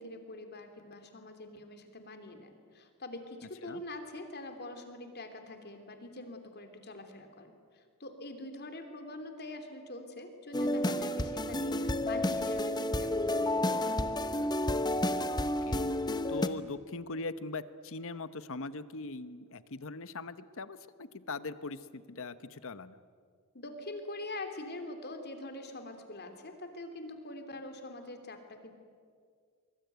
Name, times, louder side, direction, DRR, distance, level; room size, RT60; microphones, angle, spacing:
voice 1, 0.0-14.3 23.5-28.7, left 2 dB, 50° left, 6 dB, 3.2 m, -44 dB
sound 1, 10.5-16.5, left 1 dB, 20° left, 0.9 m, -30 dB
voice 2, 16.3-23.0, left 3 dB, 65° left, 13 dB, 1.0 m, -41 dB
24.5 x 23.0 x 9.3 m, 2.1 s
head